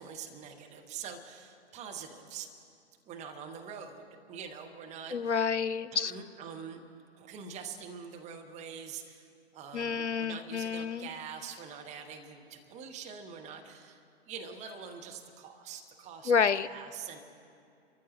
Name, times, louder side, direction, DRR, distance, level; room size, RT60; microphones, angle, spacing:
voice 1, 0.0-2.5 3.1-5.5 5.9-6.8 7.2-16.3 16.6-17.2, right 6 dB, 20° right, 3 dB, 1.2 m, -44 dB
voice 2, 5.1-6.1 9.7-11.1 16.3-16.7, left 6 dB, 90° left, 14 dB, 0.6 m, -29 dB
30.0 x 14.0 x 3.1 m, 2.5 s
figure-of-eight pair, 115°, 34 cm